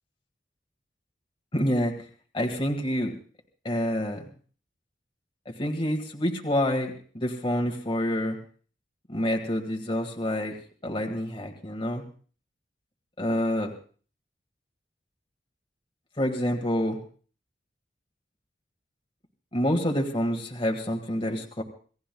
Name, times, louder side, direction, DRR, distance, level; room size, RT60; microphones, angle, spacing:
voice 1, 1.5-2.0 2.3-3.1 3.7-4.2 5.5-8.4 9.1-12.0 13.2-13.7 16.2-17.0 19.5-21.6, equal, 30° left, 2 dB, 1.8 m, -27 dB
27.0 x 17.5 x 2.3 m, 0.41 s
head